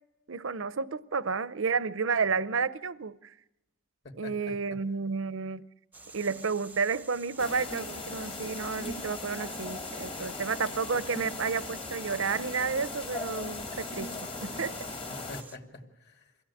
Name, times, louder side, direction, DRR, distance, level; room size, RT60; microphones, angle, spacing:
voice 1, 0.3-3.3 4.2-5.6 6.1-14.7, right 5 dB, 70° right, 0.7 m, -31 dB
voice 2, 4.0-4.8 15.1-16.4, left 2 dB, 50° left, 2.6 m, -46 dB
sound 1, 5.9-15.6, right 3 dB, 10° right, 0.7 m, -49 dB
sound 2, 7.4-15.4, left 3 dB, 25° left, 1.3 m, -38 dB
23.5 x 16.0 x 8.5 m
head